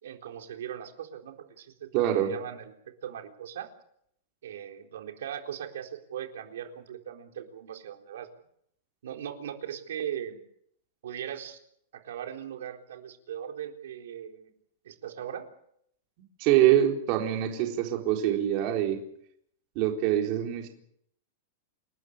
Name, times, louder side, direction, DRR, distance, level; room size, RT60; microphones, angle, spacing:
voice 1, 0.0-2.7 3.0-3.7 4.4-8.3 9.0-10.4 11.0-11.6 11.9-14.5 14.8-15.5, right 9 dB, 80° right, 4 dB, 4.2 m, -39 dB
voice 2, 1.9-2.3 16.4-19.0 19.8-20.7, right 12 dB, 40° right, 2 dB, 4.0 m, -24 dB
29.0 x 13.5 x 8.6 m, 0.70 s
supercardioid pair, 160°, 0 cm